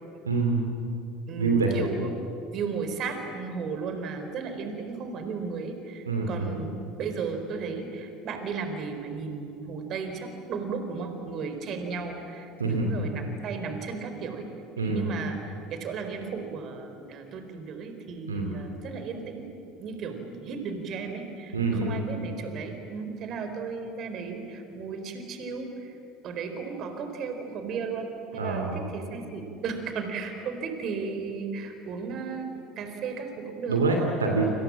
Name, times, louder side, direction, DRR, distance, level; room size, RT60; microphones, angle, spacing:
voice 1, 0.2-0.6 1.4-1.7 6.0-6.6 12.6-13.0 14.8-15.1 18.3-18.5 21.5-22.0 28.4-28.8 33.7-34.5, right 3 dB, 85° right, 2 dB, 2.7 m, -26 dB
voice 2, 1.3-2.1 2.5-14.5 14.8-19.4 19.8-21.5 21.8-26.0 26.2-32.5 32.8-33.8, right 5 dB, 45° right, 6 dB, 4.2 m, -35 dB
29.5 x 26.5 x 7.6 m, 2.7 s
figure-of-eight pair, 65°, 0 cm